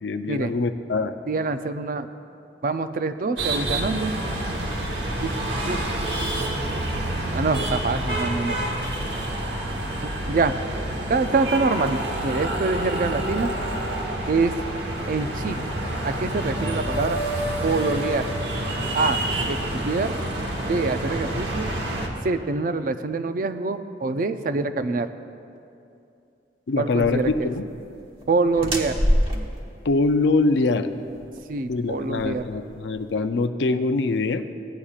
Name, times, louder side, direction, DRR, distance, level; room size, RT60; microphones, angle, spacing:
voice 1, 0.0-1.1 26.7-27.7 29.8-30.9 31.7-34.4, left 3 dB, 75° left, 9 dB, 0.5 m, -23 dB
voice 2, 1.3-2.1 2.6-4.1 5.2-5.4 5.7-5.8 6.2-6.3 7.3-8.6 10.3-10.6 11.1-13.5 14.3-14.5 15.1-15.6 16.0-17.2 17.6-18.2 18.9-19.2 19.5-20.1 20.7-21.7 22.2-25.1 26.8-27.5 28.3-28.9 31.5-32.5, right 3 dB, 50° right, 10 dB, 0.4 m, -25 dB
sound 1, 3.4-22.1, right 1 dB, 70° right, 1.2 m, -28 dB
sound 2, 27.0-33.1, equal, 30° right, 1.2 m, -28 dB
17.0 x 10.0 x 2.4 m, 2.6 s
head